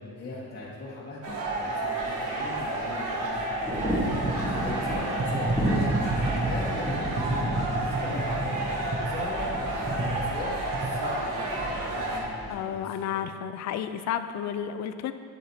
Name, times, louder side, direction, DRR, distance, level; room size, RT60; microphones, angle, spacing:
voice 1, 0.0-4.1 4.5-9.4 9.9-13.2, left 2 dB, 30° left, -6 dB, 1.4 m, -39 dB
sound 1, 1.2-12.2, right 2 dB, 75° right, 1.4 m, -31 dB
sound 2, 1.3-12.5, equal, ahead, 1.2 m, -34 dB
sound 3, 4.1-10.9, right 2 dB, 20° right, 0.8 m, -31 dB
voice 2, 12.5-15.1, left 9 dB, 60° left, 10 dB, 0.4 m, -32 dB
9.0 x 7.5 x 2.8 m, 2.2 s
cardioid pair, 120°, 32 cm